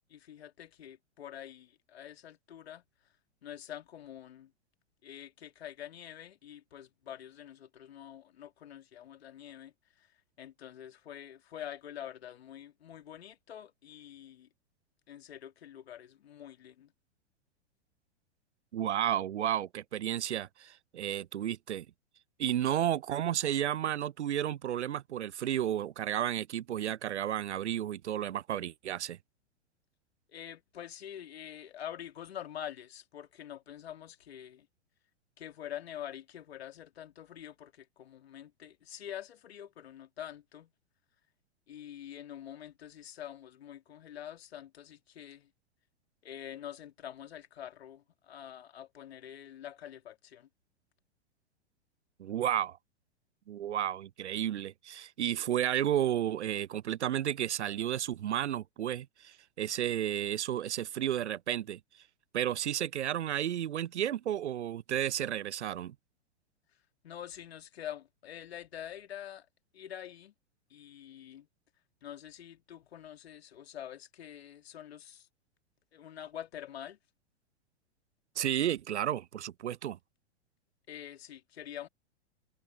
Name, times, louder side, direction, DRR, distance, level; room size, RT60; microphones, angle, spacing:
voice 1, 0.1-2.8 3.4-4.5 5.0-10.1 10.4-14.5 15.1-16.9 30.3-34.7 35.4-40.7 41.7-45.5 46.2-50.5 67.0-69.5 69.7-70.3 70.7-71.5 72.0-75.3 75.9-77.0 80.9-81.9, left 10 dB, 60° left, 2.8 m, -46 dB
voice 2, 18.7-21.9 22.4-29.2 52.2-52.8 53.5-61.8 62.3-65.9 78.4-80.0, right 11 dB, 75° right, 0.5 m, -32 dB
figure-of-eight pair, 105°, 34 cm